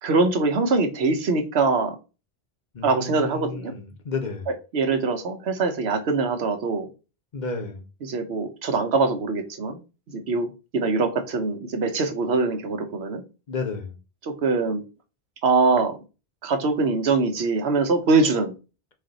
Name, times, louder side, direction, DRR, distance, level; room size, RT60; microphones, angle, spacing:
voice 1, 0.0-2.0 2.8-3.7 4.7-6.9 8.0-9.8 10.1-13.2 14.2-14.8 15.4-16.0 16.4-18.5, right 4 dB, 85° right, 1.1 m, -23 dB
voice 2, 2.7-4.5 7.3-7.8 13.5-13.9, left 4 dB, 50° left, 0.8 m, -32 dB
4.1 x 2.5 x 3.9 m
omnidirectional pair, 1.1 m